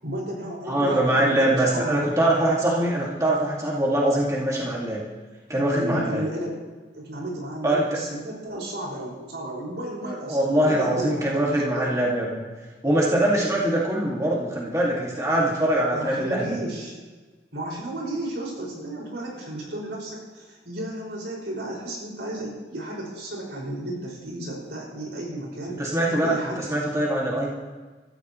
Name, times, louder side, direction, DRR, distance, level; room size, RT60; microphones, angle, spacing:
voice 1, 0.0-2.0 2.8-2.9 5.7-6.6 6.9-12.0 15.9-17.0 17.5-25.8 26.1-26.6, right 1 dB, 80° right, -3 dB, 5.6 m, -33 dB
voice 2, 0.7-5.0 5.5-6.2 7.6-7.8 10.1-12.4 12.8-16.6 25.8-27.5, right 1 dB, 20° right, -5 dB, 2.2 m, -23 dB
23.5 x 14.0 x 3.1 m, 1.3 s
head